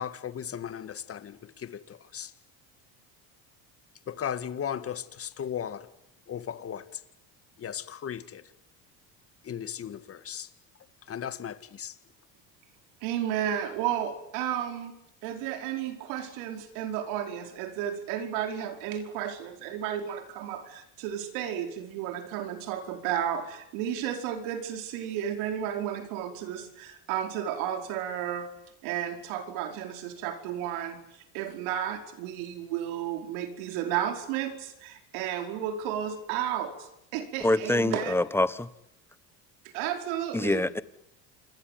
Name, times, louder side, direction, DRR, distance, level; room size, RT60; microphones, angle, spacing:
voice 1, 0.0-1.3 2.1-2.3 4.1-5.8 6.3-6.8 7.6-8.4 9.5-10.5 11.1-11.5 11.8-11.9, left 9 dB, 35° left, 2.1 m, -35 dB
voice 2, 13.0-14.9 15.2-28.5 28.8-38.1 39.7-40.7, right 10 dB, 85° right, 5.1 m, -33 dB
voice 3, 37.4-38.7 40.3-40.8, left 2 dB, 5° left, 1.3 m, -25 dB
28.5 x 22.0 x 9.4 m
cardioid pair, 115°, 38 cm